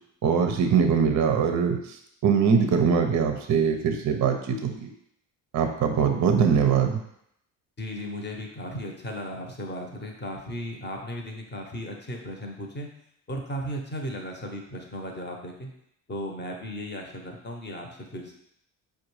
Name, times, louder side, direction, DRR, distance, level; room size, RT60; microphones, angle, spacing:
voice 1, 0.2-4.9 5.5-7.0, right 6 dB, 35° right, 5 dB, 0.6 m, -22 dB
voice 2, 7.8-12.9 13.3-15.7 16.1-18.3, equal, 20° left, 2 dB, 0.8 m, -36 dB
4.5 x 2.3 x 3.1 m, 0.73 s
supercardioid pair, 60°, 48 cm